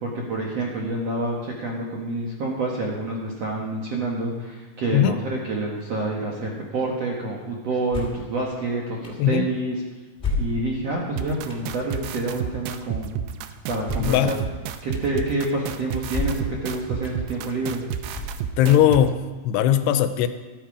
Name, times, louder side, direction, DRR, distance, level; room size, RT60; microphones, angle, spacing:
voice 1, 0.0-9.8 10.4-13.2 13.7-14.4 14.8-17.8, right 2 dB, 60° right, -2 dB, 1.8 m, -28 dB
sound 1, 7.9-8.3 9.0-9.1 10.2-10.9 11.5-11.6 13.8-14.3 14.9-15.0 16.1-16.6 17.0-17.1 18.1-18.7, left 2 dB, 15° left, 2.1 m, -29 dB
sound 2, 11.2-19.0, right 9 dB, 85° right, 2.7 m, -31 dB
voice 2, 14.0-14.3 18.6-20.3, left 11 dB, 80° left, 10 dB, 2.6 m, -19 dB
13.5 x 13.0 x 4.9 m, 1.3 s
omnidirectional pair, 4.9 m